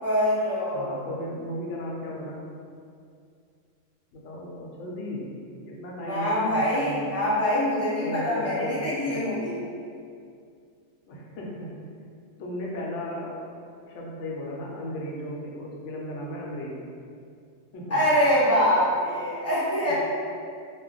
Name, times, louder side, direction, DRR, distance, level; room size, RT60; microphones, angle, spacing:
voice 1, 0.0-1.0 6.0-9.5 17.9-19.9, equal, 20° left, -10 dB, 0.5 m, -24 dB
voice 2, 0.7-2.5 4.1-5.3 5.6-7.1 8.0-9.3 11.1-11.8 12.4-13.5 13.8-16.8 17.7-18.0 19.8-19.9, left 1 dB, 70° left, -3 dB, 0.9 m, -35 dB
2.3 x 2.0 x 3.8 m, 2.3 s
omnidirectional pair, 1.4 m